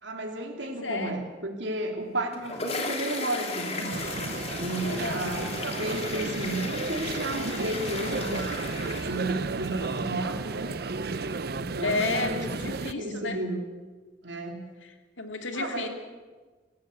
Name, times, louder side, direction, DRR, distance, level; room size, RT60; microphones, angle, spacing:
voice 1, 0.0-4.0 4.5-8.5 9.0-10.7 11.5-13.6 14.2-14.7 15.5-15.9, right 2 dB, 70° right, 3 dB, 3.2 m, -33 dB
voice 2, 0.6-1.2 4.8-5.3 11.8-13.4 14.8-15.9, left 3 dB, 85° left, 5 dB, 2.9 m, -32 dB
sound 1, 2.1-9.6, left 3 dB, 35° left, 3.0 m, -35 dB
sound 2, 2.7-11.6, right 3 dB, 15° right, 1.7 m, -48 dB
sound 3, 3.9-12.9, right 3 dB, 55° right, 0.6 m, -33 dB
26.5 x 15.0 x 8.1 m, 1.4 s
head